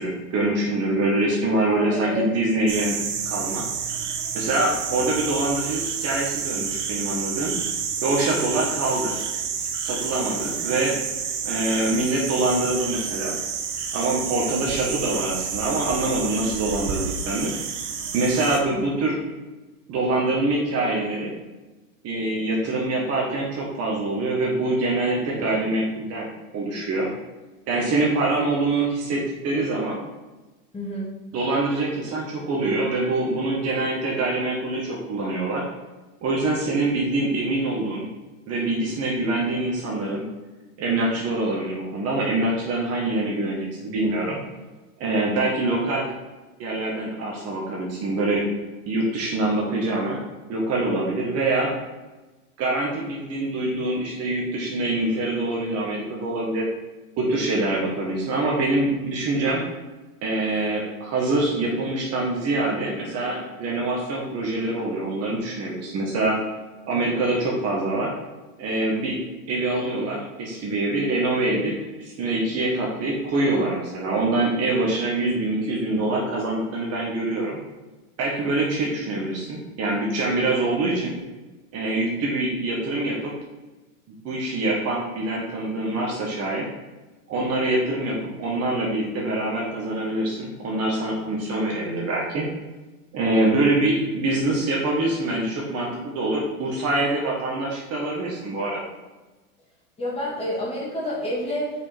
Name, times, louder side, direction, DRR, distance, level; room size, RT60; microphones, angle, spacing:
voice 1, 0.0-3.0 3.2-3.6 4.3-7.6 8.0-9.1 9.8-11.0 11.4-13.4 13.9-17.5 18.1-19.2 19.9-21.3 22.0-26.3 26.5-27.1 27.7-30.0 31.3-35.6 36.2-38.1 38.5-40.2 40.8-44.4 45.0-46.1 46.6-48.5 48.8-50.2 50.5-51.7 52.6-56.7 57.2-59.6 60.2-66.4 66.9-68.1 68.6-69.2 69.5-77.6 78.2-81.1 81.7-83.3 84.1-86.7 87.3-92.5 93.1-98.8, right 2 dB, 30° right, -3 dB, 1.6 m, -25 dB
voice 2, 1.7-2.3 30.7-31.1 100.0-101.7, left 1 dB, 10° left, -6 dB, 2.6 m, -28 dB
sound 1, 2.7-18.6, right 7 dB, 50° right, 1.3 m, -29 dB
6.7 x 5.2 x 4.6 m, 1.2 s
hypercardioid pair, 125°, 47 cm